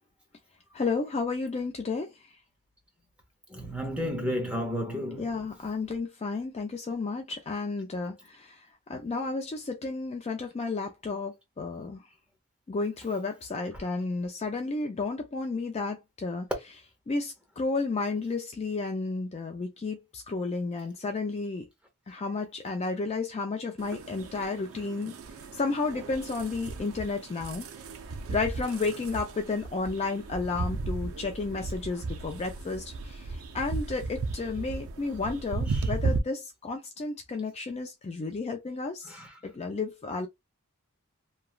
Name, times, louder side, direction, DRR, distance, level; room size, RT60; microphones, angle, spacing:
voice 1, 0.7-2.1 5.2-8.6 8.9-12.0 12.7-16.5 17.1-21.7 22.1-25.1 25.5-27.7 28.3-40.3, left 3 dB, 30° left, 0.3 m, -32 dB
voice 2, 3.5-5.5 13.7-13.8 28.6-29.1 35.7-35.9 39.0-39.3, equal, 5° right, 0.7 m, -33 dB
sound 1, 23.8-36.2, right 3 dB, 65° right, 0.5 m, -35 dB
3.0 x 2.3 x 2.3 m
head